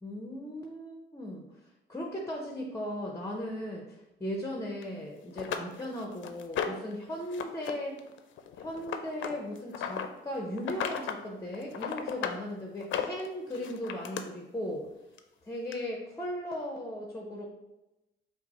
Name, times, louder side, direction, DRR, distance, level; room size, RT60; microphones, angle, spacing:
voice 1, 0.0-1.4 1.9-8.0 8.6-14.9 15.4-17.5, equal, 15° left, 0 dB, 0.6 m, -37 dB
sound 1, 4.8-4.9 5.4-6.9 7.3-7.7 8.0-10.1 10.6-11.2 11.5-12.4 12.8-14.2 15.2-15.3 15.7-15.8, left 8 dB, 75° left, 0.5 m, -35 dB
5.5 x 2.0 x 4.1 m, 0.98 s
cardioid pair, 90°, 20 cm